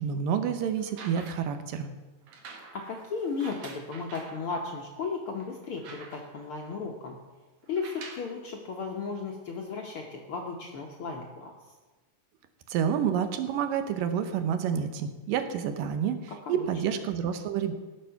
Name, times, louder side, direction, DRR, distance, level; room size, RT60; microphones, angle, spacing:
voice 1, 0.0-1.9 12.7-17.7, right 8 dB, 85° right, 8 dB, 2.6 m, -29 dB
sound 1, 0.8-1.6 2.3-4.4 5.0-5.1 5.4-6.5 7.6-8.3 9.3-9.4, right 4 dB, 70° right, 3.1 m, -47 dB
voice 2, 2.7-7.2 7.7-11.5 16.5-17.0, left 4 dB, 65° left, 0 dB, 1.4 m, -35 dB
18.0 x 6.8 x 5.8 m, 1.2 s
omnidirectional pair, 3.8 m